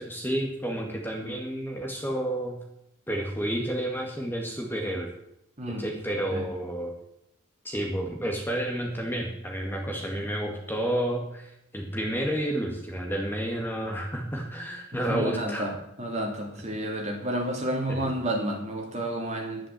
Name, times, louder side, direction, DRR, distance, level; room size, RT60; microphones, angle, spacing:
voice 1, 0.0-2.6 3.1-5.1 5.8-6.9 7.6-15.7 17.9-18.2, right 1 dB, 10° left, 1 dB, 1.9 m, -30 dB
voice 2, 15.1-19.7, right 1 dB, 30° right, 1 dB, 3.1 m, -31 dB
11.0 x 11.0 x 7.6 m, 0.80 s
head